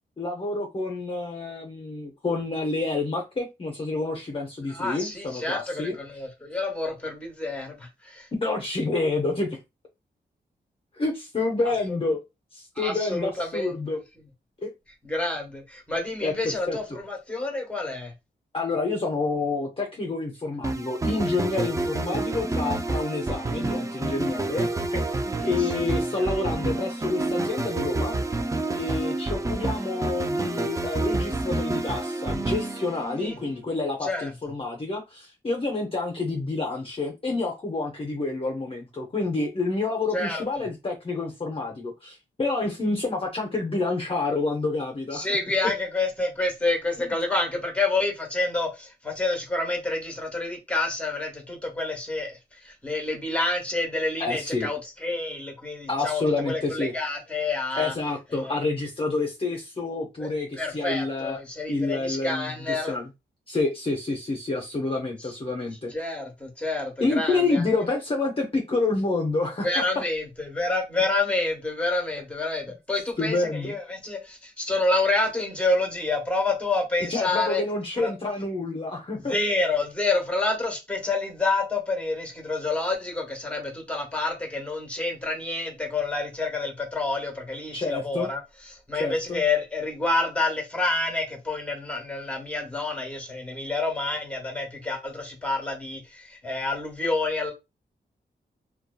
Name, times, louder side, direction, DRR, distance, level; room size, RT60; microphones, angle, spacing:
voice 1, 0.2-5.9 8.3-9.6 10.9-12.2 12.5-14.0 14.6-14.7 16.2-17.0 18.5-28.1 28.8-45.3 47.0-47.1 54.2-54.7 55.9-56.9 57.7-61.4 61.7-63.1 63.5-66.0 67.0-69.8 73.2-73.7 77.1-79.3 87.7-88.3 88.9-89.4, left 3 dB, 30° left, 0.6 m, -28 dB
voice 2, 4.7-8.3 12.7-14.0 15.0-18.1 25.6-25.9 26.2-26.3 33.2-33.4 34.0-34.3 40.1-40.6 45.1-57.9 58.3-58.6 60.2-63.0 65.9-67.6 69.6-77.6 78.0-78.1 79.1-88.4 88.7-97.5, left 2 dB, 5° left, 1.0 m, -28 dB
sound 1, 20.6-33.6, right 2 dB, 15° right, 0.3 m, -28 dB
2.6 x 2.2 x 2.2 m
cardioid pair, 60°, 19 cm